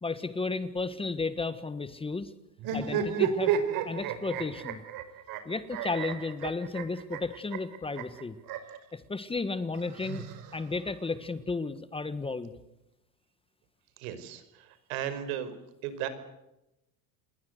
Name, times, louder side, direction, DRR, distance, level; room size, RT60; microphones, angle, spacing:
voice 1, 0.0-2.3 2.7-3.6 3.9-4.8 5.4-8.4 8.9-10.3 10.5-12.5, left 3 dB, 15° left, 13 dB, 1.5 m, -33 dB
sound 1, 2.6-8.8 9.7-10.9, right 8 dB, 55° right, 5.0 m, -32 dB
voice 2, 14.0-15.5 15.8-16.1, right 10 dB, 75° right, 11 dB, 5.3 m, -36 dB
29.5 x 21.5 x 8.1 m, 0.91 s
supercardioid pair, 125°, 43 cm